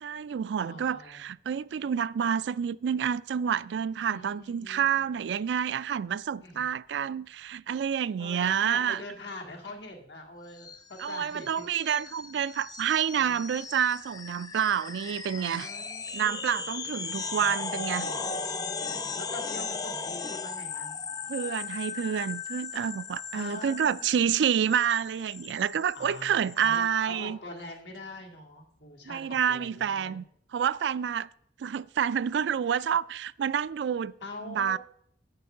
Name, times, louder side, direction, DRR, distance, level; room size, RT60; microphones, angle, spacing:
voice 1, 0.0-9.0 11.0-15.7 16.1-18.1 21.3-27.4 29.1-30.2 30.5-31.3 31.6-34.1 34.4-34.8, right 8 dB, 75° right, 0.3 m, -28 dB
voice 2, 0.6-1.3 4.1-5.0 6.4-6.7 8.2-11.7 13.1-13.4 15.4-16.5 19.2-21.0 23.3-24.1 25.9-30.2 34.2-34.8, left 2 dB, 80° left, 2.1 m, -44 dB
sound 1, 10.6-26.8, left 5 dB, 20° left, 0.5 m, -37 dB
8.4 x 6.7 x 6.5 m
head